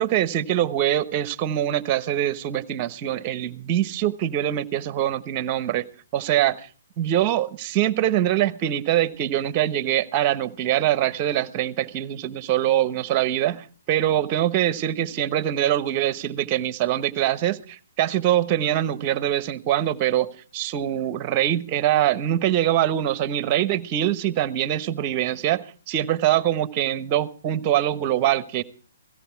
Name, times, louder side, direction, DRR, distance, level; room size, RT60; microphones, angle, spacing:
voice 1, 0.0-6.7 7.0-28.6, right 12 dB, 30° right, 15 dB, 1.1 m, -23 dB
17.5 x 16.5 x 4.6 m, 0.41 s
figure-of-eight pair, 125°, 0 cm